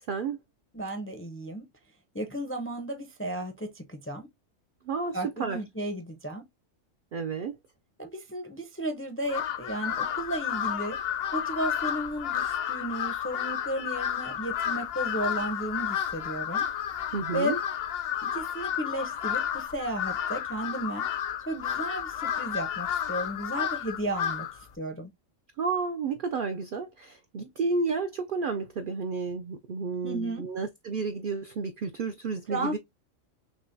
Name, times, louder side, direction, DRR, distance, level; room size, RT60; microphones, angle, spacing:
voice 1, 0.7-1.7 2.1-4.3 5.1-6.4 8.0-11.0 11.3-16.6 17.3-17.6 18.3-21.1 21.5-24.5 24.8-25.1 27.4-27.5 30.0-30.4 32.5-32.8, right 1 dB, 20° left, 0.4 m, -34 dB
voice 2, 4.9-5.6 7.1-7.5 17.1-17.6 25.6-32.8, right 4 dB, 70° right, 0.5 m, -31 dB
Crow, 9.3-24.6, left 9 dB, 60° left, 0.7 m, -31 dB
6.0 x 2.1 x 2.6 m
omnidirectional pair, 1.4 m